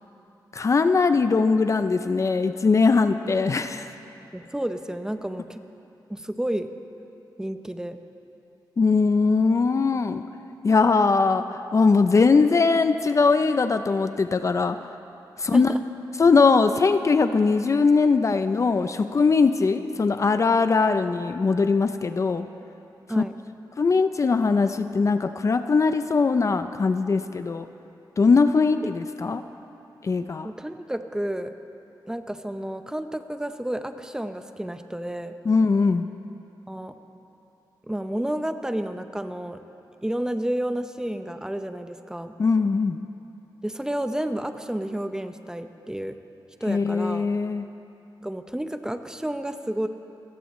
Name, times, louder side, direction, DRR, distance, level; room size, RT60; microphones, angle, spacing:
voice 1, 0.5-3.9 8.8-10.2 10.6-14.8 15.4-15.7 16.2-22.4 23.2-23.3 23.8-27.7 28.2-29.4 30.0-30.5 35.5-36.1 42.4-43.0 46.7-47.7, left 4 dB, 40° left, 9 dB, 0.5 m, -21 dB
voice 2, 4.3-5.6 6.1-6.7 7.4-8.0 15.5-15.8 23.1-23.3 30.4-31.5 32.1-35.3 36.7-36.9 37.9-39.6 40.0-42.3 43.6-46.2 46.6-47.3 48.2-49.9, right 1 dB, 10° right, 8 dB, 0.7 m, -30 dB
27.0 x 15.5 x 3.2 m, 2.8 s
wide cardioid pair, 100°, 8 cm